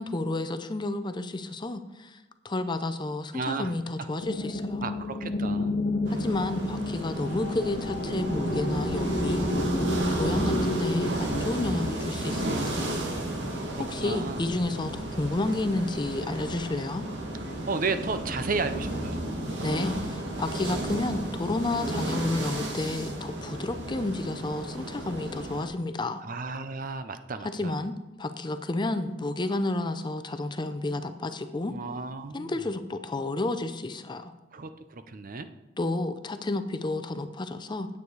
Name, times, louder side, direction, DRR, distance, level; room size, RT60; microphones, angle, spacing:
voice 1, 0.0-2.2 2.4-4.8 6.1-9.4 10.1-12.9 13.8-17.1 19.6-26.2 27.5-31.7 32.3-34.3 35.8-37.9, left 2 dB, 25° left, 10 dB, 0.6 m, -31 dB
voice 2, 3.3-3.7 4.8-5.8 11.5-12.5 13.7-14.4 17.7-19.2 26.2-27.7 31.7-32.6 34.5-35.5, right 4 dB, 50° right, 10 dB, 0.6 m, -34 dB
sound 1, 4.2-11.1, left 1 dB, 55° left, 1.1 m, -30 dB
sound 2, 6.0-25.7, right 1 dB, 70° right, 1.9 m, -33 dB
9.6 x 8.3 x 4.8 m, 1.1 s
head